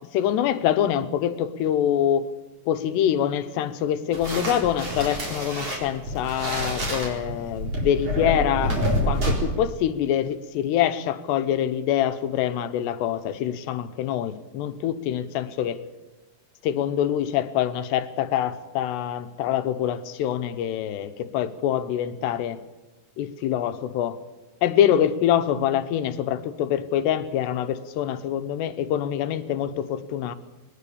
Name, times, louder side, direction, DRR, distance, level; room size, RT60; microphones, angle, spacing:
voice 1, 0.1-2.3 2.7-8.8 9.1-15.8 16.6-22.6 23.2-24.2 24.6-30.4, left 10 dB, 90° left, 10 dB, 3.2 m, -25 dB
sound 1, 4.1-9.3, equal, 35° right, 5.2 m, -27 dB
21.5 x 20.0 x 7.1 m, 1.2 s
omnidirectional pair, 4.7 m